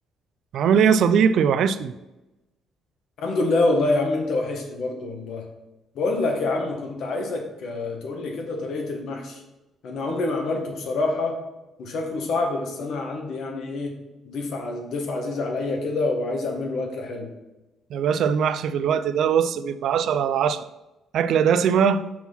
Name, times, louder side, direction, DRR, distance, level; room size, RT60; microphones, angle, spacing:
voice 1, 0.5-1.9 17.9-20.6 21.1-22.0, right 7 dB, 55° right, 13 dB, 0.3 m, -20 dB
voice 2, 3.2-5.4 5.9-9.4 9.8-11.4 11.8-14.0 14.2-17.3, left 2 dB, 55° left, 2 dB, 1.3 m, -26 dB
6.0 x 3.6 x 5.9 m, 1.0 s
cardioid pair, 165°, 0 cm